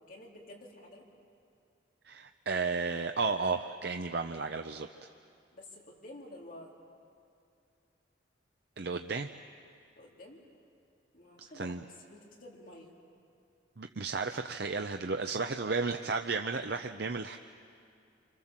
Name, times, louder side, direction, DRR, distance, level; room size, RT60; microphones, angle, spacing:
voice 1, 0.1-1.0 5.5-6.7 10.0-10.4 11.1-12.9, left 1 dB, 45° left, -2 dB, 3.9 m, -50 dB
voice 2, 2.0-4.9 8.8-9.3 11.6-11.8 13.8-17.4, right 4 dB, 60° right, 6 dB, 0.7 m, -33 dB
29.5 x 25.5 x 7.5 m, 2.4 s
head